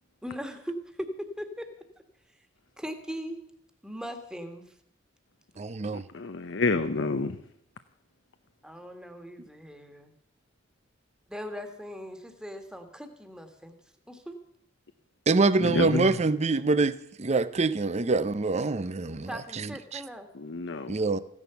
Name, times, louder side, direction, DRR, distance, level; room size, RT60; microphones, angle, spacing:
voice 1, 0.2-1.7 2.8-3.4 3.8-4.6 8.6-10.1 11.3-13.7 14.1-14.3 19.1-20.3, equal, 5° right, 1.8 m, -39 dB
voice 2, 5.6-6.1 15.3-20.0 20.9-21.2, right 3 dB, 35° right, 0.6 m, -25 dB
voice 3, 6.1-7.4 15.6-16.1 20.3-21.0, left 3 dB, 70° left, 0.8 m, -28 dB
15.5 x 11.0 x 7.0 m
head